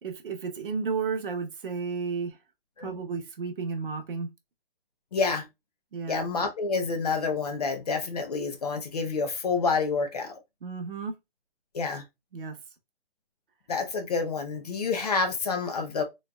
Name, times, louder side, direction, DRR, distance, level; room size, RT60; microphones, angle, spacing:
voice 1, 0.0-2.4 2.8-4.3 5.9-6.2 10.6-11.2 12.3-12.6, right 5 dB, 60° right, 1.0 m, -32 dB
voice 2, 5.1-5.5 6.1-10.3 11.7-12.0 13.7-16.0, left 4 dB, 40° left, 0.7 m, -28 dB
3.9 x 3.1 x 2.2 m
hypercardioid pair, 165°, 30 cm